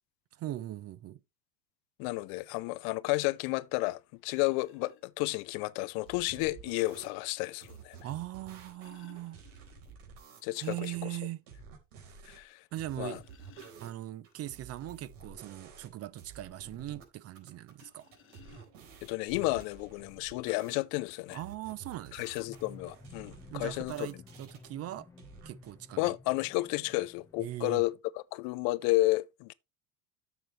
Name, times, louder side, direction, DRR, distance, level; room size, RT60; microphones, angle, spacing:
voice 1, 0.3-1.2 8.0-9.4 10.6-11.4 12.1-12.3 12.7-13.2 13.8-18.1 21.3-22.2 23.5-25.1 25.4-26.2 27.4-27.8, right 14 dB, 40° right, 0.6 m, -40 dB
voice 2, 2.0-8.0 10.4-10.9 12.3-12.6 13.0-13.2 19.0-21.4 22.1-24.1 26.0-29.5, left 21 dB, 65° left, 0.6 m, -32 dB
sound 1, 3.7-3.8 4.4-5.0 6.4-6.5 8.3-10.1 10.4-10.5 10.9-11.0 11.5-11.6 12.8-14.3 17.7-19.1 19.9-20.0 20.4-20.6, left 9 dB, 30° left, 1.2 m, -60 dB
sound 2, 6.0-7.1 7.6-11.0 11.5-12.4 12.7-17.0 17.3-20.8 21.3-24.7 25.2-25.7, right 6 dB, 75° right, 4.0 m, -52 dB
sound 3, 22.4-27.8, left 3 dB, 10° left, 0.8 m, -54 dB
10.0 x 7.0 x 3.2 m
cardioid pair, 135°, 39 cm